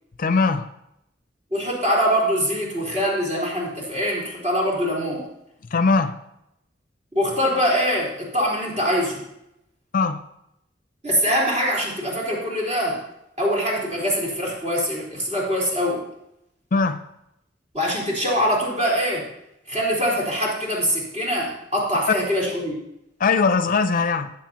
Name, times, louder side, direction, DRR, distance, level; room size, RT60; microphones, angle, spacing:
voice 1, 0.2-0.7 5.7-6.2 9.9-10.2 16.7-17.0 23.2-24.3, left 4 dB, 50° left, 0.5 m, -20 dB
voice 2, 1.5-5.3 7.1-9.2 11.0-13.0 13.4-16.0 17.7-19.3 19.7-22.8, equal, 40° right, 4.0 m, -23 dB
17.5 x 7.8 x 2.9 m
head